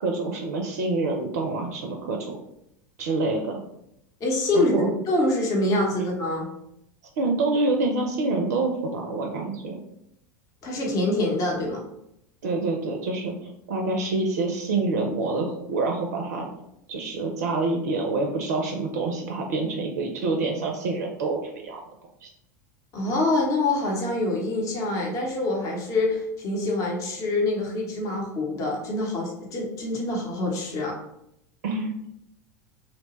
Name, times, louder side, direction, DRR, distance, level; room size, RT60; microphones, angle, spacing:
voice 1, 0.0-2.4 3.0-3.6 4.5-4.9 7.2-9.8 12.4-16.5 16.9-21.8 22.2-22.3 31.6-32.1, right 3 dB, 60° right, 2 dB, 0.4 m, -27 dB
voice 2, 4.2-6.5 10.6-11.8 22.9-30.9, left 2 dB, 35° left, -1 dB, 0.8 m, -25 dB
2.8 x 2.1 x 3.0 m, 0.78 s
figure-of-eight pair, 80°, 10 cm